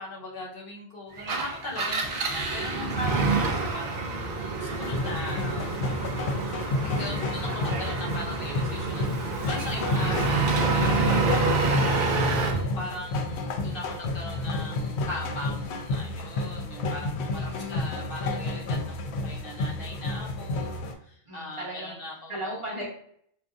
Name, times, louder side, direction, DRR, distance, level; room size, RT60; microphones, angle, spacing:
voice 1, 0.0-5.9 6.8-9.1 9.4-11.7 12.3-22.6, left 1 dB, 55° left, -3 dB, 1.0 m, -39 dB
Engine, 1.2-12.6, right 3 dB, 55° right, 0.7 m, -27 dB
voice 2, 2.6-3.0 7.5-7.8 11.3-12.2 17.3-18.0 21.3-21.9 22.3-22.8, equal, 30° right, -5 dB, 0.9 m, -38 dB
sound 1, 4.7-20.9, left 2 dB, 70° left, 0.8 m, -31 dB
4.5 x 2.6 x 2.4 m, 0.65 s
omnidirectional pair, 1.2 m